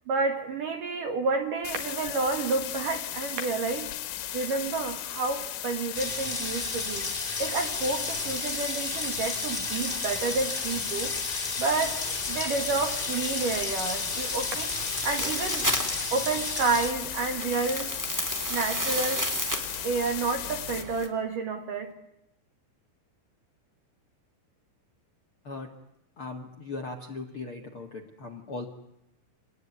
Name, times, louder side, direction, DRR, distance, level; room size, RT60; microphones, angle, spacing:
voice 1, 0.1-3.9 4.3-7.1 7.4-11.1 11.6-14.7 15.0-15.7 16.1-18.0 18.5-19.3 19.8-21.9, right 4 dB, 55° right, 5 dB, 2.5 m, -30 dB
sound 1, 1.6-20.8, left 12 dB, 90° left, 4.4 m, -36 dB
sound 2, 5.9-16.9, left 3 dB, 25° left, 1.1 m, -33 dB
sound 3, 11.9-21.1, equal, 5° right, 1.9 m, -35 dB
voice 2, 26.2-28.7, left 3 dB, 70° left, 4 dB, 1.2 m, -38 dB
27.0 x 20.5 x 9.6 m, 0.84 s
omnidirectional pair, 6.0 m